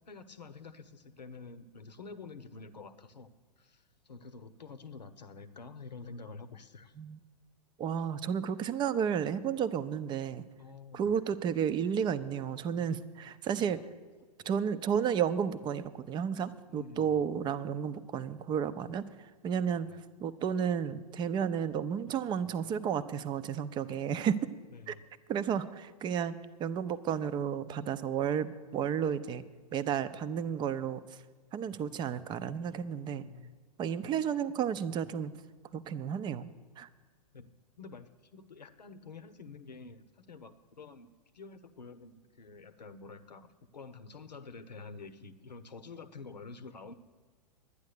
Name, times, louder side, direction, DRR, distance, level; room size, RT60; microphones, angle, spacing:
voice 1, 0.1-3.3 3.6-6.9 10.6-11.2 13.7-13.8 16.7-17.2 23.9-24.0 24.7-25.0 33.2-33.5 37.3-37.5 37.8-46.9, left 4 dB, 85° left, 12 dB, 0.9 m, -48 dB
voice 2, 7.8-10.4 10.9-13.8 14.5-19.0 19.4-19.9 20.2-24.5 24.9-25.0 25.3-29.4 29.7-31.0 31.5-33.2 33.8-35.3 35.7-36.5 36.8-36.9, right 8 dB, 20° right, 13 dB, 0.5 m, -32 dB
11.5 x 9.7 x 6.6 m, 1.5 s
hypercardioid pair, 110°, 21 cm